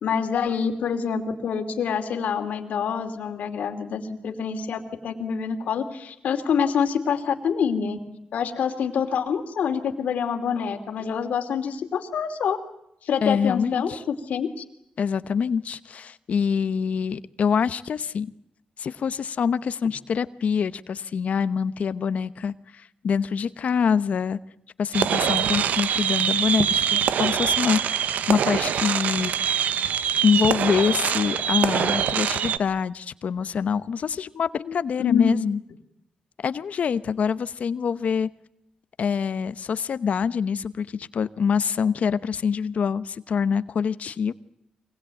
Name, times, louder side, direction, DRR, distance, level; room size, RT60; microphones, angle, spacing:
voice 1, 0.0-8.0 8.3-12.6 13.0-14.6 34.7-35.4, left 7 dB, 85° left, 6 dB, 2.8 m, -26 dB
voice 2, 13.2-14.0 15.0-18.3 18.8-24.4 24.8-29.3 30.2-35.6 36.4-38.3 39.0-44.3, left 6 dB, 65° left, 14 dB, 0.9 m, -25 dB
sound 1, 24.9-32.6, right 8 dB, 90° right, 0.9 m, -24 dB
24.5 x 20.5 x 9.1 m, 0.79 s
cardioid pair, 95°, 3 cm